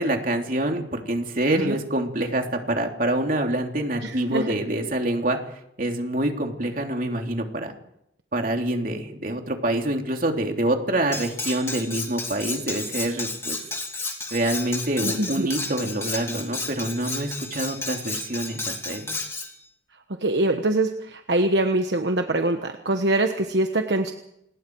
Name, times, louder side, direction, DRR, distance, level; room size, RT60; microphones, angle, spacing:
voice 1, 0.0-5.4 5.8-7.7 8.3-13.6 14.3-19.2, right 1 dB, 50° right, 3 dB, 3.0 m, -26 dB
voice 2, 4.0-4.6 15.0-15.5 20.2-24.1, right 2 dB, 70° right, 5 dB, 1.2 m, -24 dB
Cutlery silverware, 11.1-19.5, left 3 dB, 15° left, 3.2 m, -32 dB
27.5 x 20.5 x 4.7 m, 0.79 s
head